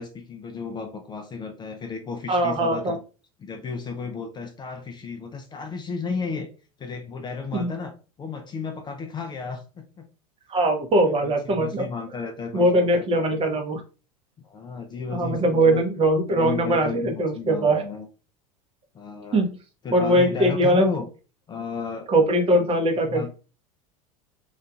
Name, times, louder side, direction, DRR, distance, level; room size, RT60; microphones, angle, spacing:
voice 1, 0.0-3.0 3.4-6.5 6.8-7.9 8.2-10.1 11.0-13.4 14.4-15.8 16.3-18.1 18.9-19.4 19.8-21.1 21.5-22.7 23.0-23.3, left 4 dB, 25° left, 5 dB, 0.4 m, -33 dB
voice 2, 2.3-3.0 7.5-7.7 10.5-11.9 12.5-13.8 15.1-17.8 19.3-19.5 19.9-20.9 22.1-23.3, right 1 dB, 30° right, 4 dB, 0.7 m, -21 dB
2.7 x 2.3 x 2.3 m, 0.35 s
hypercardioid pair, 85°, 19 cm